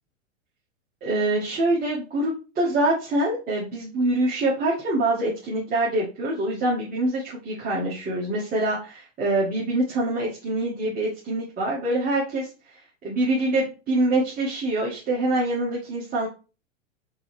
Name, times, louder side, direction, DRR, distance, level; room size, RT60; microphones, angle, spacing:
voice 1, 1.0-16.3, right 2 dB, 20° right, -6 dB, 1.4 m, -25 dB
4.0 x 3.8 x 3.3 m, 0.33 s
hypercardioid pair, 105°, 39 cm